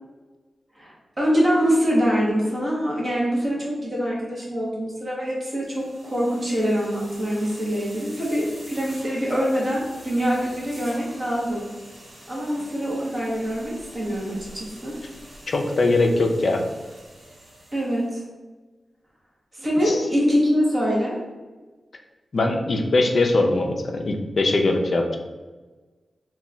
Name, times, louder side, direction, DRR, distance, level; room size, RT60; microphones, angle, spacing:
voice 1, 0.8-11.6 12.3-14.9 17.7-18.2 19.6-21.1, equal, 30° right, -5 dB, 0.7 m, -24 dB
sound 1, 5.5-18.2, right 1 dB, 75° right, 1.1 m, -45 dB
voice 2, 15.5-16.7 19.9-20.0 22.3-25.2, left 2 dB, 50° left, 3 dB, 0.3 m, -21 dB
2.2 x 2.1 x 3.7 m, 1.3 s
wide cardioid pair, 150°, 0 cm